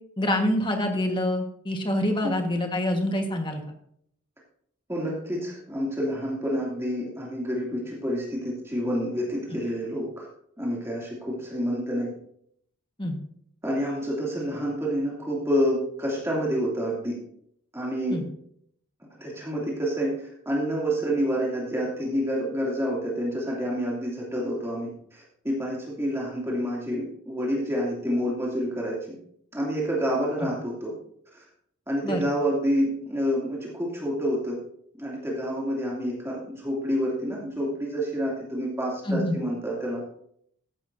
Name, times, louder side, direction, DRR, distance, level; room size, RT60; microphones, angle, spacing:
voice 1, 0.2-3.6 9.5-9.6 13.0-13.2 18.1-18.2 30.4-30.5 32.0-32.3 39.0-39.4, left 1 dB, 20° left, 3 dB, 1.5 m, -26 dB
voice 2, 4.9-10.3 10.6-12.1 13.6-17.2 17.7-18.2 19.2-29.2 29.5-30.9 31.3-31.4 31.9-34.6 35.0-40.0, equal, 10° right, -4 dB, 2.7 m, -28 dB
14.5 x 11.5 x 2.7 m, 0.68 s
head